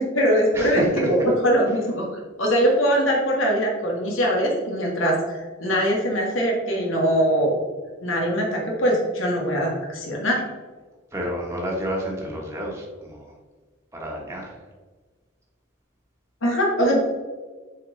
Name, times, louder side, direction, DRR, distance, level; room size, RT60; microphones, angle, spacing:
voice 1, 0.0-7.5 8.0-10.4 16.4-17.0, equal, 90° left, -1 dB, 1.7 m, -22 dB
voice 2, 0.5-1.3 11.1-13.2 13.9-14.5, equal, 15° right, -2 dB, 1.3 m, -30 dB
7.3 x 4.3 x 4.0 m, 1.3 s
head